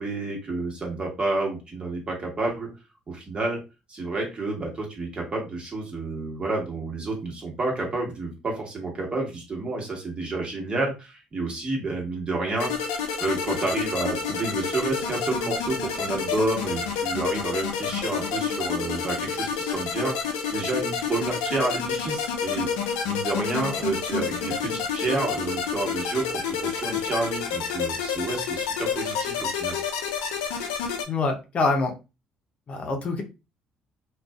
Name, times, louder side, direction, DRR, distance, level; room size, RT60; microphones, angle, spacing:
voice 1, 0.0-2.7 3.1-3.6 3.9-29.8, right 2 dB, 35° right, -1 dB, 1.3 m, -30 dB
sound 1, 12.6-31.0, left 6 dB, 85° left, 0.4 m, -29 dB
voice 2, 31.1-31.9 32.7-33.2, left 3 dB, 50° left, 3 dB, 0.6 m, -25 dB
2.5 x 2.4 x 2.3 m, 0.28 s
supercardioid pair, 65°, 3 cm